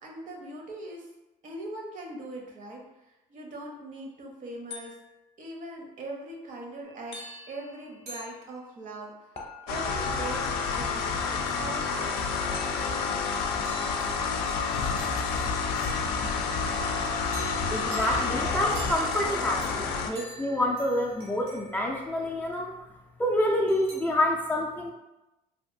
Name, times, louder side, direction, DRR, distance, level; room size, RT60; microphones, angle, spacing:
voice 1, 0.0-1.1 1.4-5.0 5.4-9.1 9.7-12.5, right 2 dB, 50° right, 0 dB, 0.7 m, -41 dB
sound 1, 4.7-5.3 7.1-7.8 9.3-10.1 12.5-13.1, left 4 dB, 35° left, 0.7 m, -45 dB
sound 2, 6.8-9.0 13.6-16.5 17.3-22.7 23.7-24.0, right 1 dB, 85° right, 0.8 m, -47 dB
sound 3, 9.7-20.1, left 5 dB, 85° left, 0.4 m, -29 dB
voice 2, 17.7-22.7 23.2-24.9, left 1 dB, 10° left, -2 dB, 0.3 m, -27 dB
2.7 x 2.5 x 2.5 m, 1.0 s
cardioid pair, 100°, 17 cm